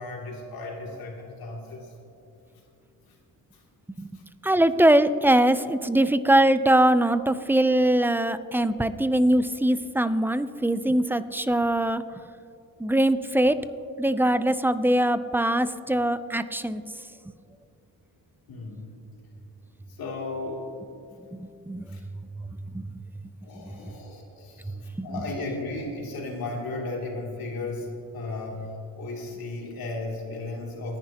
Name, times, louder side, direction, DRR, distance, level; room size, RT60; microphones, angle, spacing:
voice 1, 0.0-1.9 3.1-3.2 4.1-4.2 18.5-18.9 20.0-20.7 21.9-22.0 23.4-31.0, left 2 dB, 75° left, -1 dB, 2.8 m, -35 dB
voice 2, 4.4-12.0 12.8-13.6 14.0-16.8 21.3-21.9 22.4-22.9 24.7-25.2, right 1 dB, 5° right, 12 dB, 0.4 m, -22 dB
28.5 x 10.5 x 2.9 m, 2.7 s
cardioid pair, 115°, 36 cm